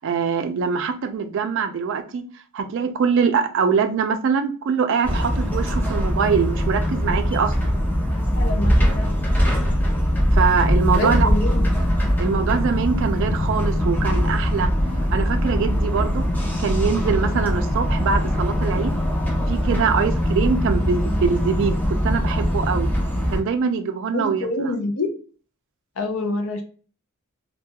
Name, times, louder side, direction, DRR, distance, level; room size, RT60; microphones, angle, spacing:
voice 1, 0.0-2.3 2.5-7.8 10.3-11.3 12.2-14.7 15.1-16.3 16.6-18.9 19.5-22.9 23.3-24.7, right 6 dB, 60° right, 0.3 m, -23 dB
sound 1, 5.0-23.4, equal, 10° left, 0.5 m, -21 dB
voice 2, 8.3-9.1 10.9-11.7 24.1-25.1 26.0-26.6, left 2 dB, 65° left, 0.5 m, -26 dB
2.2 x 2.2 x 2.8 m
head